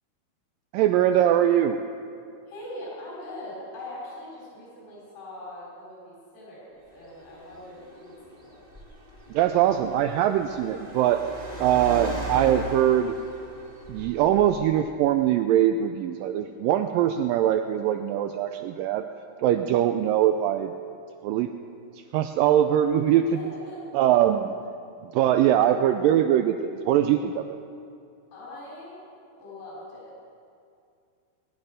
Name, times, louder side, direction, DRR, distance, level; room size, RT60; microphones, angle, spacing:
voice 1, 0.7-1.8 9.3-11.2 11.6-13.2 13.9-19.1 19.4-20.7 21.2-21.5 22.1-23.3 23.9-24.4 25.1-27.5, right 11 dB, 90° right, 8 dB, 1.9 m, -22 dB
voice 2, 2.5-8.6 23.3-24.2 28.3-29.0 29.3-30.3, left 1 dB, 80° left, -6 dB, 5.9 m, -42 dB
Car, 6.9-14.8, right 1 dB, 25° right, 0.9 m, -39 dB
19.5 x 11.0 x 5.0 m, 2.5 s
omnidirectional pair, 4.5 m